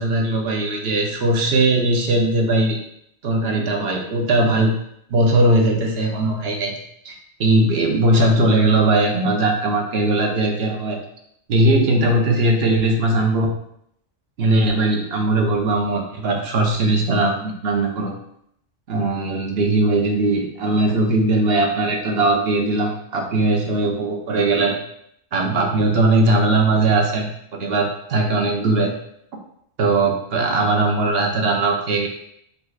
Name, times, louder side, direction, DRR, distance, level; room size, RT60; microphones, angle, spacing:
voice 1, 0.0-2.8 3.2-4.7 5.1-6.8 7.0-7.1 7.4-11.0 11.5-13.5 14.4-18.1 18.9-24.8 25.3-28.9 29.8-32.1, right 2 dB, 55° right, 1 dB, 0.8 m, -19 dB
4.5 x 4.0 x 2.3 m, 0.72 s
omnidirectional pair, 1.3 m